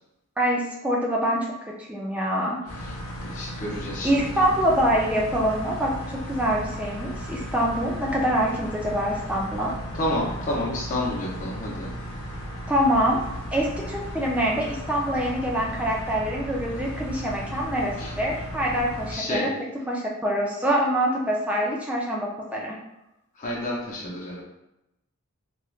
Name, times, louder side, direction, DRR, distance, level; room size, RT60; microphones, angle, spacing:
voice 1, 0.4-2.6 4.0-9.7 12.7-13.2 13.5-19.5 19.9-22.8, equal, 5° right, -3 dB, 0.4 m, -25 dB
sound 1, 2.7-19.1, equal, 80° left, 0.7 m, -35 dB
voice 2, 3.2-4.2 9.9-11.9 18.0-18.1 19.1-19.5 23.4-24.4, left 1 dB, 35° left, -5 dB, 0.6 m, -29 dB
3.1 x 2.3 x 2.4 m, 0.90 s
head